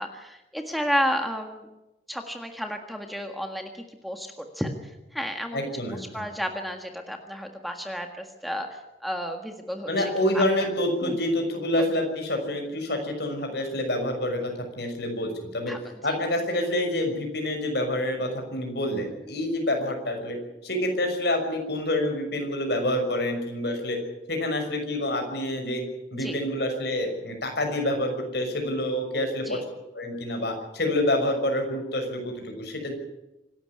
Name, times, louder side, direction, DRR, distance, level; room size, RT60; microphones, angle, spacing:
voice 1, 0.0-1.7 2.1-5.6 5.9-10.4 11.0-11.2 15.7-15.8 16.1-16.2 26.2-26.4 29.4-29.6, equal, ahead, 4 dB, 1.7 m, -32 dB
voice 2, 5.5-6.2 9.9-15.7 16.0-20.4 20.6-24.0 24.3-25.8 26.1-33.0, left 1 dB, 60° left, 4 dB, 6.2 m, -27 dB
26.0 x 12.5 x 9.9 m, 0.98 s
head